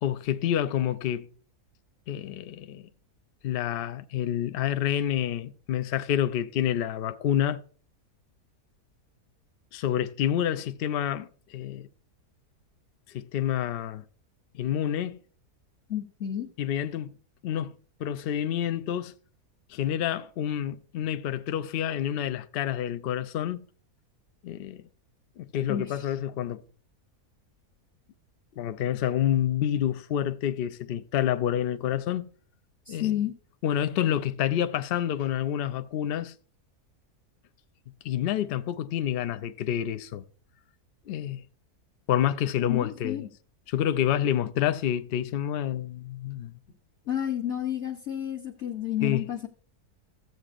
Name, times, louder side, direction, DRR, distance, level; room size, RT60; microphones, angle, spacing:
voice 1, 0.0-1.3 2.1-2.9 3.4-7.6 9.7-11.9 13.1-14.0 14.5-15.2 16.6-17.2 17.4-19.1 19.7-23.6 24.4-24.9 25.4-26.6 28.6-32.2 32.9-33.1 33.6-36.3 38.0-40.2 41.1-41.4 42.1-43.3 43.7-46.6 49.0-49.3, left 10 dB, 85° left, 0.5 m, -28 dB
voice 2, 15.9-16.5 25.7-26.0 32.9-33.3 42.7-43.3 47.1-49.5, left 11 dB, 55° left, 1.0 m, -31 dB
14.5 x 7.8 x 2.5 m
omnidirectional pair, 1.6 m